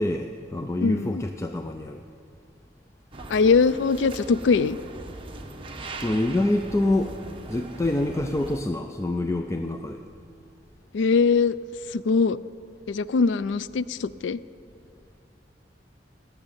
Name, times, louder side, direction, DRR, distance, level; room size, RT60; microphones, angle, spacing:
voice 1, 0.0-2.0 6.0-7.2 7.5-10.0, left 1 dB, 15° left, 6 dB, 0.4 m, -26 dB
voice 2, 0.8-1.2 3.3-4.8 10.9-11.6 11.9-12.4 12.9-14.4, left 4 dB, 80° left, 17 dB, 0.4 m, -22 dB
sound 1, 3.1-8.6, right 2 dB, 30° right, 1.1 m, -39 dB
18.5 x 6.5 x 8.9 m, 2.5 s
head